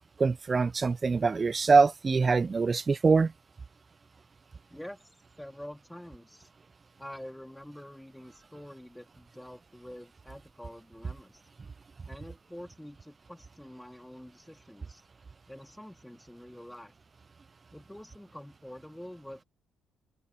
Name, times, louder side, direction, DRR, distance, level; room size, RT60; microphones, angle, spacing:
voice 1, 0.2-3.3, right 4 dB, 35° right, 0.4 m, -24 dB
voice 2, 4.7-6.5 7.0-11.5 12.1-15.1 15.5-16.9 17.7-19.4, left 1 dB, 5° left, 3.3 m, -47 dB
supercardioid pair, 65°, 0 cm